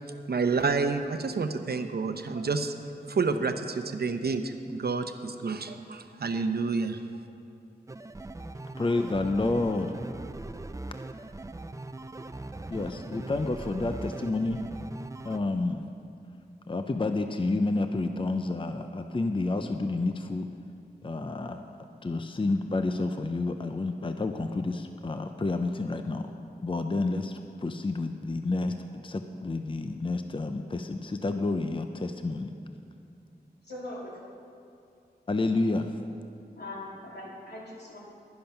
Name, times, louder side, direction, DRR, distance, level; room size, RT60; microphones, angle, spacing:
voice 1, 0.1-2.7 3.1-7.0, right 4 dB, 70° right, 8 dB, 0.8 m, -29 dB
sound 1, 7.9-15.4, right 2 dB, 20° right, 0.5 m, -40 dB
voice 2, 8.8-9.9 12.7-14.6 15.2-15.8 16.7-20.5 21.0-21.6 22.0-26.3 26.6-32.5 35.3-36.0, left 2 dB, 30° left, 7 dB, 0.6 m, -29 dB
voice 3, 33.6-34.2 36.6-38.0, left 1 dB, 80° left, -5 dB, 2.9 m, -41 dB
10.5 x 10.5 x 5.8 m, 2.5 s
cardioid pair, 50°, 17 cm